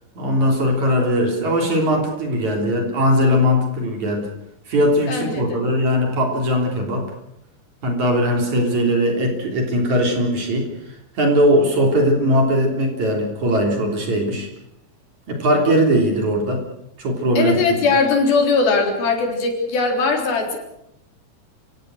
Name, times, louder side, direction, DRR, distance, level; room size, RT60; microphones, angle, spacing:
voice 1, 0.2-4.3 4.7-7.1 7.8-10.7 11.2-14.5 15.3-16.6 17.0-17.5, equal, 45° right, 2 dB, 4.7 m, -19 dB
voice 2, 5.1-5.6 17.4-20.6, left 4 dB, 65° left, 3 dB, 5.5 m, -20 dB
29.5 x 17.5 x 6.4 m, 0.80 s
omnidirectional pair, 4.7 m